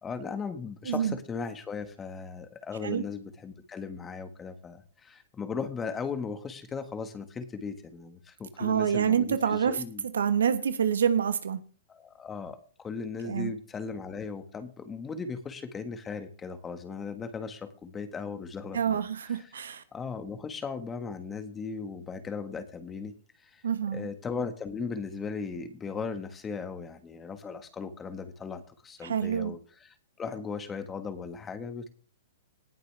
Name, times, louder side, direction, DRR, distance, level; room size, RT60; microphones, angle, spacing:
voice 1, 0.0-10.0 11.9-19.6 19.9-23.1 23.4-23.6 23.9-31.9, left 5 dB, 15° left, 1.5 m, -37 dB
voice 2, 8.6-11.6 13.2-13.5 18.7-19.8 23.6-24.1 29.0-29.5, right 8 dB, 80° right, 1.2 m, -27 dB
18.5 x 6.5 x 3.4 m
hypercardioid pair, 125°, 0 cm